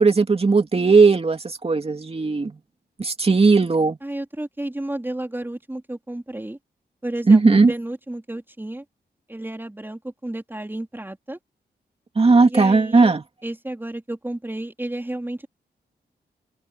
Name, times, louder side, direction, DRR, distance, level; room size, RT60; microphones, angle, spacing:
voice 1, 0.0-2.6 3.0-4.0 7.3-7.7 12.2-13.2, right 4 dB, 35° right, 2.5 m, -17 dB
voice 2, 4.0-6.6 7.0-8.8 9.3-11.4 12.4-13.1 13.4-15.5, right 1 dB, 10° right, 3.9 m, -32 dB
open air
wide cardioid pair, 90°, 17 cm